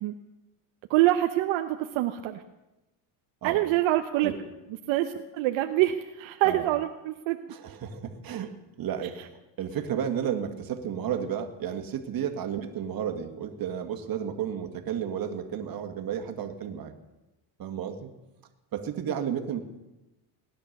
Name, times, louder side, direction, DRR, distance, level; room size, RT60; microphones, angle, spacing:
voice 1, 0.9-2.4 3.4-4.3 4.9-7.4, right 15 dB, 75° right, 5 dB, 1.0 m, -25 dB
voice 2, 6.4-6.7 7.5-8.5 8.8-9.3 9.6-16.9 17.6-18.1 18.7-19.6, right 8 dB, 45° right, 6 dB, 2.0 m, -32 dB
18.5 x 11.0 x 6.7 m, 1.0 s
cardioid pair, 115°, 48 cm